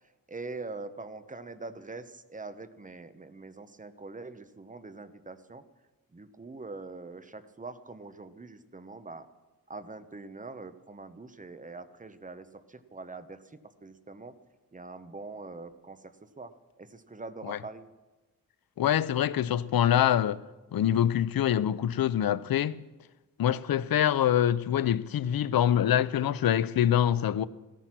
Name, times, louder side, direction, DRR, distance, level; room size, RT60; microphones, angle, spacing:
voice 1, 0.3-5.6 6.1-9.3 9.7-14.4 14.7-17.9, right 3 dB, 20° right, 1.0 m, -43 dB
voice 2, 18.8-20.4 20.7-22.8 23.4-27.4, left 10 dB, 80° left, 0.6 m, -25 dB
16.5 x 14.0 x 6.1 m
wide cardioid pair, 130°, 35 cm